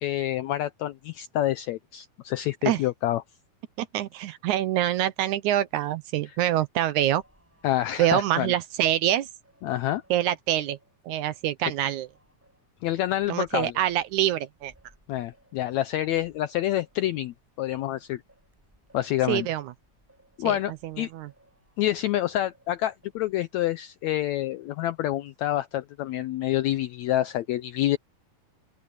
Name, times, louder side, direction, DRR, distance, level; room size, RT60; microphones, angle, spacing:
voice 1, 0.0-3.2 7.6-8.5 9.6-10.0 12.8-13.7 15.1-18.2 18.9-19.5 20.4-21.1 21.8-28.0, left 14 dB, 80° left, 1.6 m, -27 dB
voice 2, 3.8-7.2 8.0-9.3 10.1-10.8 11.1-12.1 13.3-14.7 19.3-19.7 20.4-20.6 20.8-21.3, right 12 dB, 75° right, 2.0 m, -25 dB
Singing, 7.0-11.4 11.8-22.1 22.4-23.4, right 1 dB, 5° right, 6.8 m, -63 dB
open air
omnidirectional pair, 3.8 m